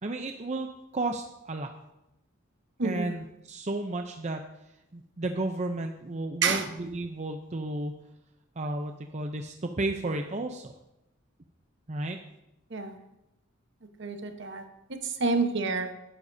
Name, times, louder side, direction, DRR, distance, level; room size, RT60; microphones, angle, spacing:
voice 1, 0.0-0.7 0.9-1.7 2.8-4.4 4.9-7.9 8.6-10.7 11.9-12.2, right 2 dB, 35° right, 5 dB, 0.6 m, -33 dB
voice 2, 14.0-14.6 14.9-15.9, right 4 dB, 60° right, 6 dB, 1.1 m, -28 dB
19.0 x 10.0 x 2.7 m, 0.90 s
head